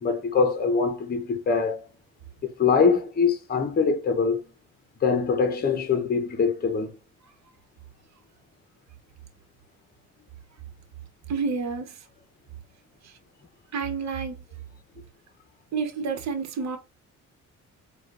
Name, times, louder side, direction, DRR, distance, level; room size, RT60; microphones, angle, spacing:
voice 1, 0.0-1.9 2.4-4.4 5.0-6.9, left 5 dB, 30° left, 0.8 m, -23 dB
voice 2, 11.3-12.0 13.0-13.2 13.7-14.4 15.7-16.8, right 5 dB, 65° right, 1.0 m, -29 dB
4.4 x 2.4 x 2.5 m
cardioid pair, 90°, 30 cm